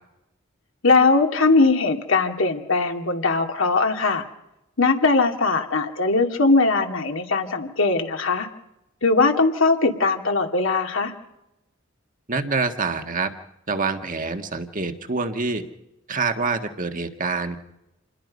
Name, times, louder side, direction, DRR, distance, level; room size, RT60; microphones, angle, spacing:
voice 1, 0.8-4.2 4.8-8.5 9.0-11.1, left 3 dB, 70° left, 4 dB, 2.4 m, -20 dB
voice 2, 12.3-13.3 13.7-15.6 16.1-17.6, right 4 dB, 40° right, 7 dB, 1.6 m, -26 dB
28.0 x 21.0 x 5.4 m, 0.92 s
head